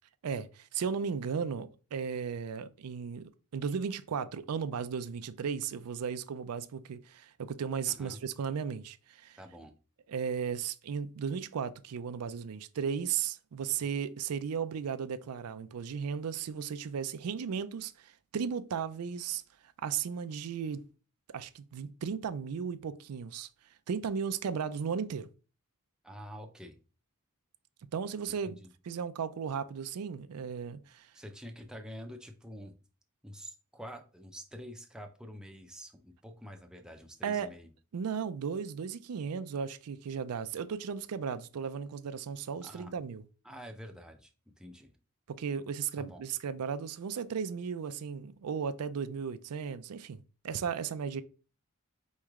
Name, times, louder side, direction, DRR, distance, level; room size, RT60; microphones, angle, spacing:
voice 1, 0.2-9.4 10.1-19.4 19.8-20.8 21.3-23.5 23.9-25.3 27.9-31.1 37.2-37.5 37.9-43.2 45.3-51.2, right 6 dB, 85° right, 0.4 m, -35 dB
voice 2, 7.9-8.2 9.4-9.7 26.0-26.8 28.4-28.7 31.1-32.8 33.2-37.7 42.6-42.9 43.4-44.9 46.0-46.3, equal, 5° right, 0.5 m, -47 dB
4.5 x 3.2 x 3.5 m
head